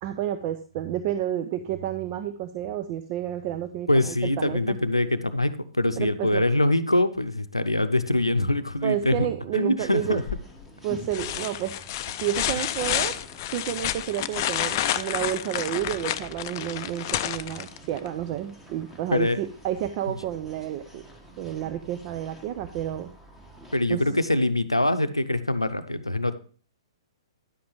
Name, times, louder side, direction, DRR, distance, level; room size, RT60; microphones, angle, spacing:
voice 1, 0.0-4.8 6.0-6.4 8.8-10.2 10.8-11.7 12.2-13.2 13.5-21.0 21.4-23.1 23.9-24.0, right 11 dB, 35° right, 10 dB, 0.5 m, -30 dB
voice 2, 3.9-10.2 12.6-12.7 19.1-19.4 23.7-26.4, left 1 dB, 85° left, 12 dB, 0.7 m, -24 dB
sound 1, 9.8-23.8, equal, 5° right, 1.6 m, -48 dB
sound 2, 10.3-10.6 11.1-18.1 19.8-19.9, left 12 dB, 35° left, 0.5 m, -30 dB
10.0 x 7.8 x 3.3 m, 0.41 s
figure-of-eight pair, 115°, 3 cm